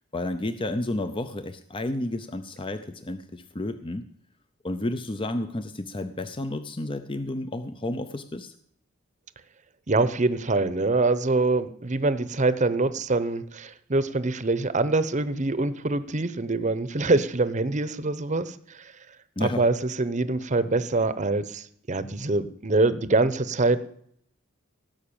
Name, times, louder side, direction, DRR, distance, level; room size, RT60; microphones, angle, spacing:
voice 1, 0.1-4.1 4.6-8.5 19.4-19.7, left 1 dB, 25° left, 10 dB, 0.6 m, -31 dB
voice 2, 9.9-18.9 19.4-23.8, right 3 dB, 35° right, 14 dB, 0.9 m, -24 dB
17.5 x 6.0 x 8.8 m, 0.67 s
head